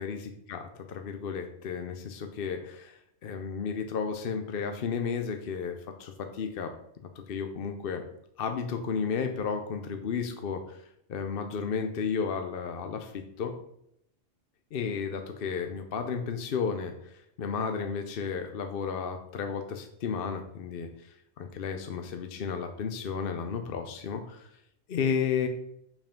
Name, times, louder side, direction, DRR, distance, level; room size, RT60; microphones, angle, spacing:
voice 1, 0.5-6.7 7.3-8.0 8.4-10.8 11.1-13.5 14.7-20.9 21.4-24.5 24.9-25.5, left 6 dB, 55° left, 6 dB, 0.8 m, -33 dB
5.5 x 5.0 x 5.1 m, 0.75 s
omnidirectional pair, 1.3 m